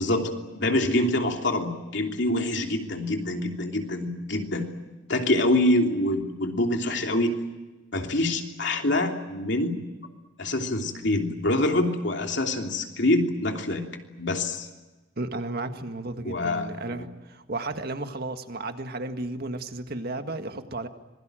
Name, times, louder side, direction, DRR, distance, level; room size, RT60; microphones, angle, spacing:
voice 1, 0.0-4.7 5.1-7.3 7.9-9.7 10.4-13.9 14.2-14.7 16.2-16.7 17.0-17.1, left 1 dB, 60° left, 3 dB, 3.1 m, -25 dB
voice 2, 15.2-20.9, right 2 dB, 50° right, 7 dB, 1.8 m, -33 dB
26.0 x 22.0 x 9.1 m, 1.2 s
head